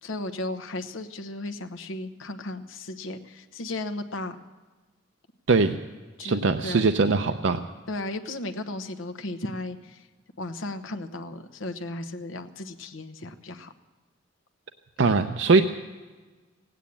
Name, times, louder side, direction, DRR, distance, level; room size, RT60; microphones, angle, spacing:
voice 1, 0.0-4.4 6.2-6.9 7.9-10.0 10.4-13.7 15.0-15.1, left 2 dB, 85° left, 6 dB, 1.0 m, -35 dB
voice 2, 6.2-7.6 15.0-15.6, right 4 dB, 65° right, 7 dB, 0.6 m, -21 dB
17.0 x 9.2 x 8.5 m, 1.3 s
head